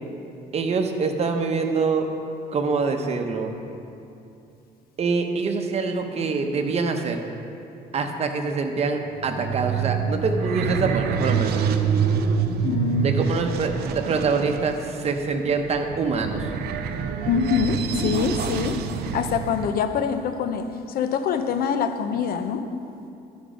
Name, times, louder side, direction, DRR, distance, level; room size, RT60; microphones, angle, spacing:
voice 1, 0.5-2.1 2.5-3.5 5.0-7.2 7.9-11.6 13.0-16.5, right 4 dB, 40° right, 4 dB, 0.9 m, -25 dB
sound 1, 9.2-19.7, right 6 dB, 70° right, 0.6 m, -26 dB
voice 2, 12.6-13.1 17.3-18.8 19.1-22.7, left 6 dB, 60° left, 9 dB, 0.7 m, -25 dB
12.0 x 5.2 x 5.1 m, 2.7 s
cardioid pair, 110°, 17 cm